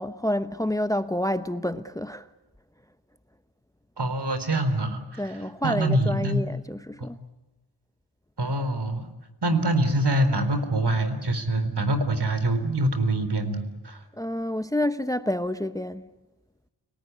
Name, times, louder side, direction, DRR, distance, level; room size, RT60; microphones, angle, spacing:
voice 1, 0.0-2.3 5.2-7.2 14.1-16.1, left 1 dB, 10° left, 0.9 m, -28 dB
voice 2, 4.0-5.2 5.6-6.4 7.0-7.1 8.4-9.1 9.4-14.0, right 1 dB, 60° right, 4.0 m, -25 dB
30.0 x 18.5 x 9.5 m
wide cardioid pair, 65°, 45 cm